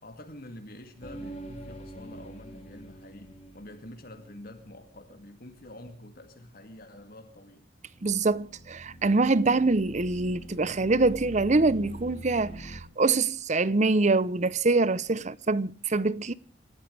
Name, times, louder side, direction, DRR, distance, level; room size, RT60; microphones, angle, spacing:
voice 1, 0.0-7.7, left 1 dB, 50° left, 2.4 m, -47 dB
sound 1, 1.0-5.3 7.8-12.8, right 1 dB, 35° left, 4.4 m, -45 dB
voice 2, 8.0-16.3, right 3 dB, 40° right, 0.7 m, -25 dB
29.5 x 13.5 x 3.4 m
head